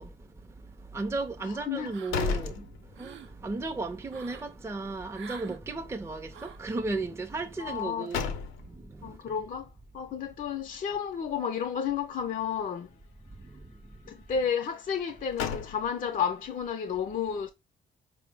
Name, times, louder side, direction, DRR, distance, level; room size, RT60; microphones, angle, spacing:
voice 1, 0.0-9.4 13.3-14.2, right 3 dB, 15° right, 0.5 m, -36 dB
voice 2, 1.6-1.9 7.6-8.1 9.0-9.7 9.9-12.9 14.1-17.5, left 7 dB, 40° left, 0.5 m, -31 dB
sound 1, 1.7-3.4 3.7-3.8 7.7-8.9 15.0-16.2, left 6 dB, 85° left, 0.6 m, -35 dB
sound 2, 1.9-2.4 2.8-3.3 4.1-4.5 5.1-5.6 6.3-6.7, right 7 dB, 70° right, 0.6 m, -47 dB
4.4 x 2.0 x 3.3 m
cardioid pair, 90°, 20 cm